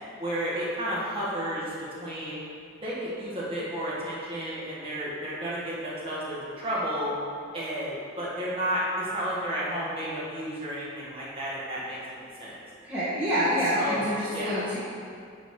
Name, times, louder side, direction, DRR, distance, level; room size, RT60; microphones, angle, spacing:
voice 1, 0.2-2.4 2.8-7.1 7.5-12.6 13.7-14.6, equal, 25° right, -8 dB, 1.9 m, -32 dB
voice 2, 12.8-14.8, equal, 10° right, -12 dB, 1.6 m, -27 dB
10.5 x 4.1 x 4.9 m, 2.3 s
head